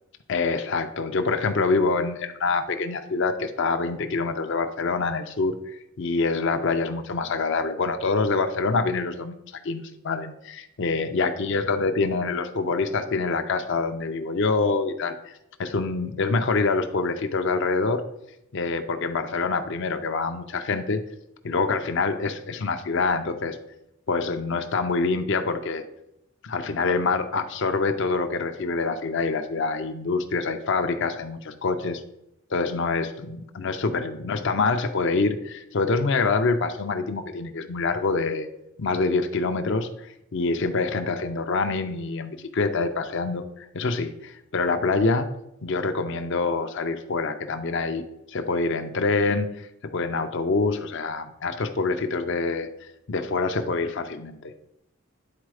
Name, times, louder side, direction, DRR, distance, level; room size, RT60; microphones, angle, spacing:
voice 1, 0.3-9.3 9.6-18.0 18.5-21.0 21.4-23.6 24.1-25.8 26.4-32.0 32.5-38.5 38.8-45.3 45.6-48.0 48.3-54.5, left 3 dB, 55° left, 7 dB, 0.5 m, -26 dB
9.7 x 4.1 x 4.8 m, 0.84 s
head